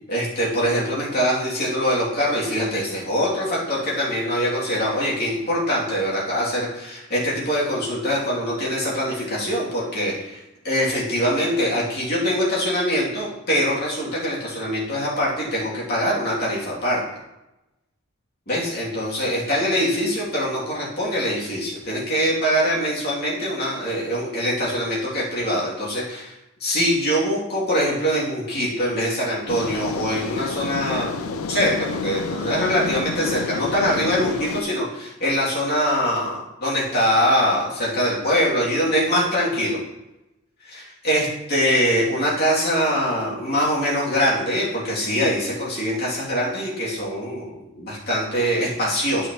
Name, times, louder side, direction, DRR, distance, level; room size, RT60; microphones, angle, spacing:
voice 1, 0.1-17.0 18.5-26.3 26.6-39.8 40.6-49.3, equal, 50° left, -6 dB, 2.5 m, -23 dB
sound 1, 29.5-34.6, left 4 dB, 80° left, 0.5 m, -29 dB
12.0 x 4.9 x 2.9 m, 0.96 s
head